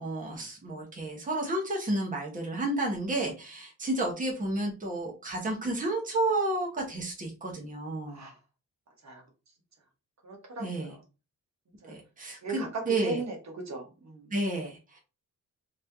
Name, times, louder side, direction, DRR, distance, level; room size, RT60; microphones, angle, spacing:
voice 1, 0.0-8.2 10.6-10.9 11.9-13.2 14.3-15.0, right 2 dB, 25° right, -1 dB, 1.0 m, -31 dB
voice 2, 8.1-8.4 9.0-9.2 10.2-11.0 11.8-11.9 12.4-13.4 13.6-14.3, right 3 dB, 55° right, 1 dB, 1.1 m, -37 dB
3.2 x 2.7 x 3.5 m, 0.30 s
wide cardioid pair, 150°, 33 cm